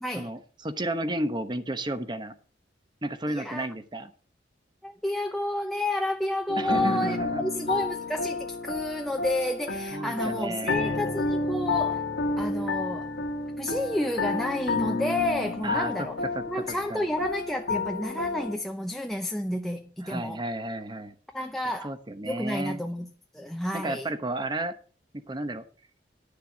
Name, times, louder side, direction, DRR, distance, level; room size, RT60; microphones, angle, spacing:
voice 1, 0.2-2.3 3.0-4.1 6.6-7.4 9.9-11.2 15.6-16.1 16.3-17.1 20.0-21.1 21.8-22.8 23.7-24.7 25.3-25.6, right 1 dB, 25° right, 1.0 m, -32 dB
voice 2, 3.3-3.7 4.8-12.1 12.4-13.1 13.6-16.2 16.5-20.4 21.3-21.9 22.2-23.1 23.3-24.1, left 1 dB, ahead, 0.7 m, -30 dB
sound 1, 6.5-18.6, left 3 dB, 90° left, 1.7 m, -30 dB
11.5 x 6.7 x 6.1 m
head